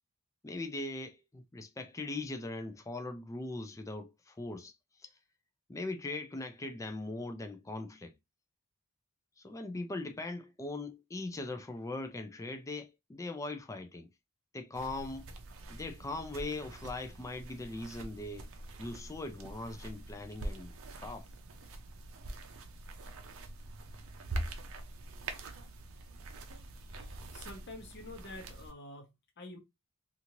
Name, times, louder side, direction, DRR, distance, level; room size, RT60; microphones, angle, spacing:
voice 1, 0.4-4.7 5.0-5.1 5.7-8.1 9.4-14.1 14.5-15.3 15.7-18.5 18.8-21.3, left 2 dB, 15° left, 0.4 m, -40 dB
sound 1, 14.7-28.7, right 2 dB, 65° right, 0.5 m, -44 dB
voice 2, 26.8-29.6, left 2 dB, 50° left, 0.8 m, -48 dB
2.8 x 2.5 x 2.9 m
head